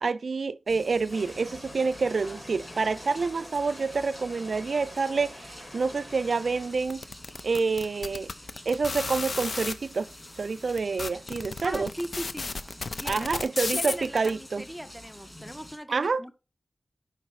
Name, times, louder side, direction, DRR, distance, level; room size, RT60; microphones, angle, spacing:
voice 1, 0.0-7.0 7.4-8.3 8.7-10.1 10.4-11.9 13.1-14.6 15.9-16.2, right 4 dB, 75° right, 0.4 m, -28 dB
sound 1, 0.7-15.8, left 1 dB, 25° left, 2.8 m, -48 dB
sound 2, 1.1-6.7, left 1 dB, 40° left, 3.2 m, -46 dB
sound 3, 6.9-9.7 10.4-10.5 10.8-14.3, left 3 dB, 70° left, 0.5 m, -33 dB
voice 2, 11.6-12.5 12.9-13.4 13.7-16.3, equal, ahead, 0.6 m, -38 dB
5.5 x 4.0 x 6.1 m
wide cardioid pair, 70°, 0 cm